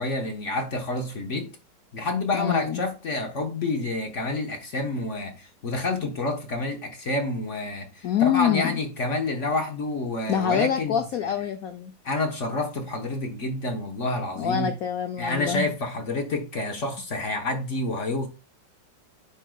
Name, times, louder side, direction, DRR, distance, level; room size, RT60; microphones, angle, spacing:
voice 1, 0.0-1.5 1.9-11.3 12.0-14.7 15.2-18.3, left 2 dB, 45° left, 1.2 m, -28 dB
voice 2, 2.3-2.8 8.0-8.8 10.3-11.9 14.4-15.7, left 9 dB, 70° left, 0.9 m, -25 dB
10.0 x 4.6 x 2.3 m
omnidirectional pair, 2.1 m